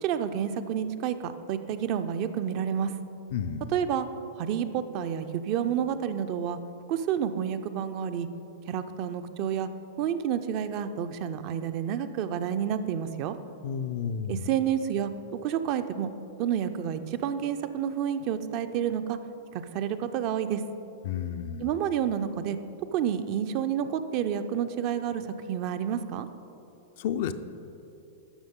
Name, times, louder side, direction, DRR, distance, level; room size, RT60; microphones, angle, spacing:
voice 1, 0.0-2.9 3.7-4.1 4.4-6.6 6.9-8.3 8.7-9.7 10.0-13.4 14.3-15.1 15.4-16.1 16.4-19.2 19.5-20.6 21.6-22.6 22.9-26.3, right 9 dB, 45° right, 10 dB, 0.4 m, -29 dB
voice 2, 3.3-3.7 13.6-14.4 21.0-21.7 27.0-27.3, left 8 dB, 60° left, 10 dB, 0.4 m, -31 dB
13.0 x 5.5 x 3.7 m, 2.8 s
hypercardioid pair, 105°, 0 cm